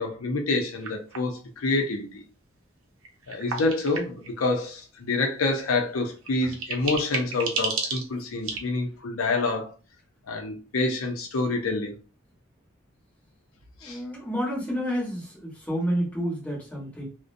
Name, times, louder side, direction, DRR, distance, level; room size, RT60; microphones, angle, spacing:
voice 1, 0.0-2.2 3.3-9.7 10.3-11.9 13.8-14.0, left 3 dB, 85° left, 0.5 m, -27 dB
sound 1, 0.8-1.4 3.0-4.4 5.8-5.9 6.2-8.6, right 4 dB, 85° right, 0.6 m, -32 dB
voice 2, 13.8-17.1, equal, 10° left, 1.1 m, -29 dB
2.5 x 2.1 x 2.5 m
head